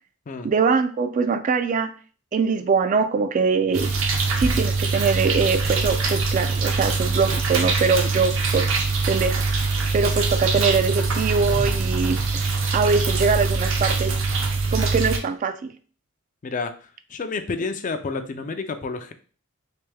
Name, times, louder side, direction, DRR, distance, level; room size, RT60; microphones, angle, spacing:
voice 1, 0.4-1.9 2.3-3.9 4.4-8.7 9.1-9.5 9.9-14.1 14.7-15.7, right 5 dB, 35° right, 10 dB, 0.3 m, -23 dB
sound 1, 3.7-15.2, right 4 dB, 65° right, 0.7 m, -23 dB
voice 2, 16.4-16.7 17.1-19.1, left 4 dB, 40° left, 9 dB, 0.4 m, -29 dB
3.3 x 3.1 x 3.3 m, 0.40 s
head